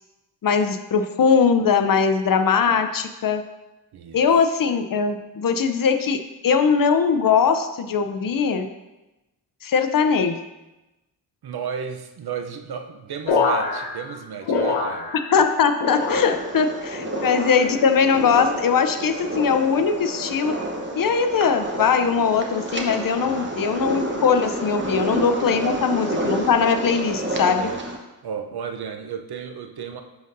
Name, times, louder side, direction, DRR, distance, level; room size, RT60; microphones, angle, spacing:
voice 1, 0.4-3.4 4.1-8.7 9.6-10.4 15.1-20.6 21.0-27.7, left 6 dB, 50° left, 9 dB, 0.6 m, -20 dB
voice 2, 3.9-4.2 11.4-15.1 17.0-17.2 23.2-23.5 24.8-25.1 25.6-25.8 27.6-27.8 28.2-30.0, right 7 dB, 60° right, 6 dB, 0.7 m, -33 dB
sound 1, 13.3-15.5 15.8-16.6 17.1-17.8 18.4-18.9 19.8-20.2 21.1-21.4, left 4 dB, 90° left, 1.0 m, -27 dB
sound 2, 16.0-28.0, right 1 dB, 25° right, 1.0 m, -29 dB
10.5 x 3.9 x 2.6 m, 1.0 s
cardioid pair, 75°, 43 cm